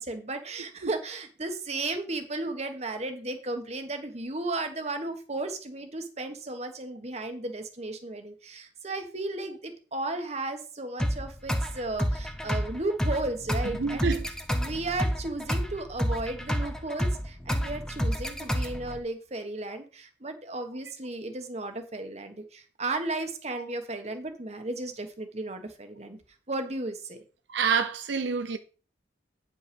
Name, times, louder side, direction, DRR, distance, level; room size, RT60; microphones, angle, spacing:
voice 1, 0.0-26.2 26.5-27.2, right 2 dB, 35° right, 1.4 m, -34 dB
sound 1, 11.0-19.0, equal, 5° left, 0.8 m, -30 dB
voice 2, 13.8-14.3 27.5-28.6, right 5 dB, 80° right, 0.6 m, -27 dB
9.2 x 5.5 x 5.3 m
head